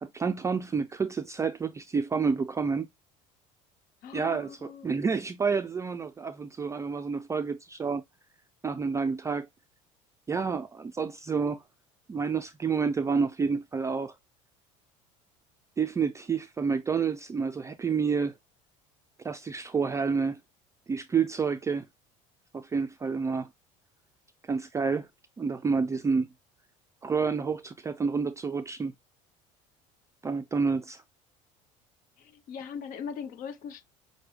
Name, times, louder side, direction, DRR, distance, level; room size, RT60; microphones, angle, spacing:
voice 1, 0.0-2.9 4.1-8.0 8.6-9.5 10.3-11.6 12.1-14.2 15.8-18.3 19.2-20.4 20.9-21.9 22.5-23.5 24.4-25.1 25.4-26.3 27.0-28.9 30.2-31.0, right 5 dB, 20° right, 0.4 m, -29 dB
voice 2, 4.0-4.9 32.2-33.8, left 7 dB, 60° left, 0.8 m, -40 dB
5.9 x 2.2 x 3.1 m
supercardioid pair, 95°, 16 cm